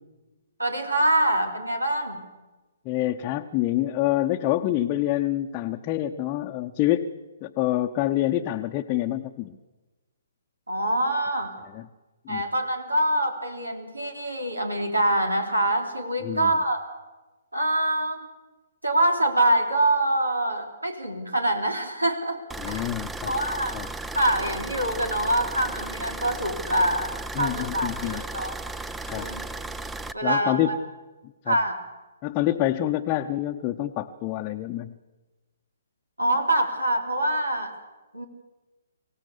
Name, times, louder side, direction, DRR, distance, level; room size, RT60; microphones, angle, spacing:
voice 1, 0.6-2.2 10.7-11.5 12.3-16.8 17.5-18.3 18.8-22.4 22.7-22.9 23.3-23.7 24.1-28.5 29.1-29.4 30.1-30.8 31.5-31.8 36.2-37.7 38.1-38.3, right 1 dB, 90° right, 5 dB, 3.7 m, -25 dB
voice 2, 2.8-7.1 7.4-9.6 11.7-11.8 12.3-12.4 16.2-16.5 22.6-23.3 23.7-23.9 27.3-28.2 29.0-29.3 30.2-30.8 31.5-31.6 32.2-34.9, left 14 dB, 25° left, 2 dB, 0.9 m, -26 dB
sound 1, 22.5-30.1, right 2 dB, 5° right, 0.6 m, -35 dB
24.5 x 17.0 x 8.4 m, 1.2 s
figure-of-eight pair, 130°, 0 cm